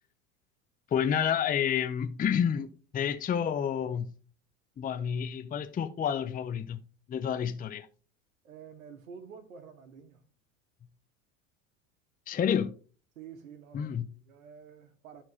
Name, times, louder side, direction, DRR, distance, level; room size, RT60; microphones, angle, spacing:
voice 1, 0.9-2.7 2.9-4.2 4.8-6.8 7.1-7.9 12.3-12.8 13.7-14.1, left 8 dB, 20° left, 0.6 m, -29 dB
voice 2, 8.4-10.2 13.1-15.2, right 6 dB, 85° right, 1.5 m, -49 dB
13.0 x 4.4 x 2.9 m
hypercardioid pair, 90°, 40 cm